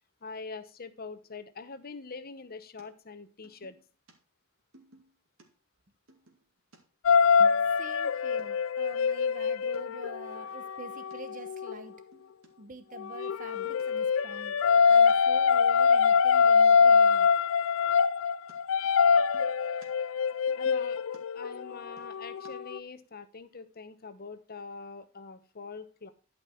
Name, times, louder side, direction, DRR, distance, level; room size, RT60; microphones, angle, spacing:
voice 1, 0.2-3.8 20.6-26.1, left 4 dB, 50° left, 11 dB, 1.0 m, -44 dB
sound 1, 2.8-2.9 3.4-4.1 4.7-5.5 6.1-8.1 8.4-8.5 8.9-9.0 9.3-9.8 10.3-10.5 11.1-11.2 11.6-11.7 12.0-12.5 12.9-13.3 13.8-13.9 14.3-15.2 18.5-18.6 18.8-19.9 20.2-22.5, right 3 dB, 85° right, 2.3 m, -57 dB
sound 2, 7.0-11.8 13.0-22.8, left 6 dB, 70° left, 0.4 m, -24 dB
voice 2, 7.8-11.9 12.6-14.5 14.9-17.3, right 2 dB, 40° right, 9 dB, 0.9 m, -46 dB
11.5 x 5.4 x 4.5 m, 0.37 s
head